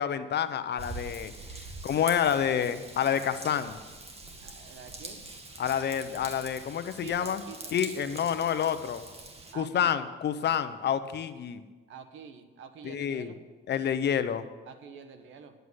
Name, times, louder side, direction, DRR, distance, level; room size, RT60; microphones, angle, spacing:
voice 1, 0.0-1.3 1.8-3.8 5.6-7.4 7.7-9.0 9.5-11.6 12.8-13.3 13.7-14.5, left 8 dB, 60° left, 11 dB, 0.9 m, -28 dB
Raindrop / Vehicle horn car horn honking / Trickle dribble, 0.8-9.5, right 2 dB, 30° right, 2.0 m, -44 dB
voice 2, 2.2-2.8 4.4-5.2 7.0-8.2 9.5-10.0 11.9-13.4 14.7-15.5, right 6 dB, 80° right, 8 dB, 1.3 m, -47 dB
11.0 x 8.1 x 8.0 m, 1.3 s
cardioid pair, 90°, 20 cm